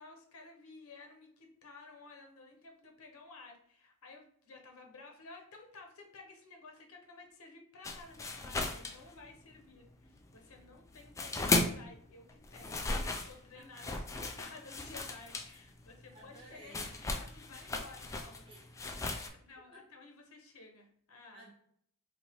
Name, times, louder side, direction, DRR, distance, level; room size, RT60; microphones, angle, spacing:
voice 1, 0.0-18.4 19.4-21.5, left 3 dB, 85° left, 1 dB, 0.8 m, -54 dB
sound 1, 7.8-9.6 9.9-11.9 12.3-19.3, left 2 dB, 15° left, 0.3 m, -36 dB
voice 2, 13.5-14.0 16.1-16.9 18.5-19.3 19.7-19.8 21.3-21.5, right 1 dB, 25° right, -6 dB, 1.1 m, -55 dB
4.2 x 2.8 x 3.0 m, 0.65 s
head